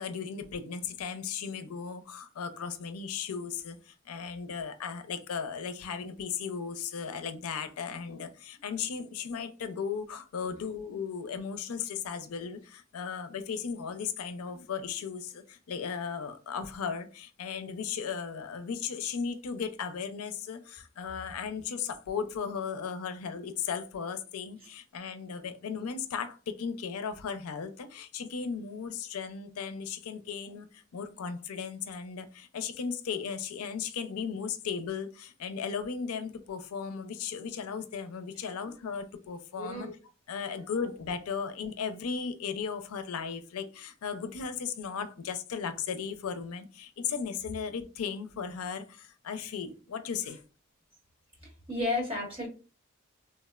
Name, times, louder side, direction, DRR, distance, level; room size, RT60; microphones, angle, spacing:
voice 1, 0.0-39.9 40.3-50.4, left 6 dB, 90° left, 0.4 m, -36 dB
voice 2, 39.5-39.9 40.5-40.8 50.2-50.3 51.4-52.5, left 2 dB, 25° right, 1.2 m, -35 dB
3.3 x 2.0 x 2.2 m
head